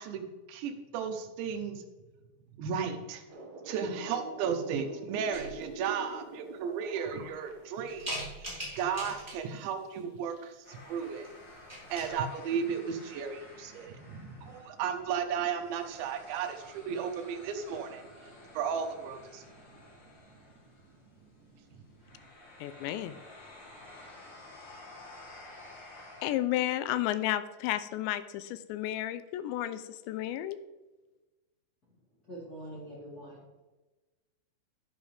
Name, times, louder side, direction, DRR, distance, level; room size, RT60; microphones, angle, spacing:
voice 1, 0.0-1.8 2.6-3.2 3.7-8.1 8.4-11.3 11.9-18.3 18.5-19.5, right 7 dB, 85° right, 3.3 m, -34 dB
sound 1, 3.3-9.6 10.0-10.5 12.0-12.1, right 3 dB, 60° right, 2.0 m, -47 dB
sound 2, 5.3-5.9 6.5-6.6 7.1-7.5 7.9-9.6 11.0-11.3 11.5-12.1, right 1 dB, 10° right, 3.8 m, -41 dB
sound 3, 10.6-26.3, left 2 dB, 45° left, 1.6 m, -52 dB
voice 2, 22.6-23.2 26.2-30.6, left 13 dB, 90° left, 2.9 m, -32 dB
voice 3, 32.3-33.7, right 1 dB, 25° left, 2.7 m, -45 dB
11.5 x 10.5 x 3.4 m
omnidirectional pair, 5.1 m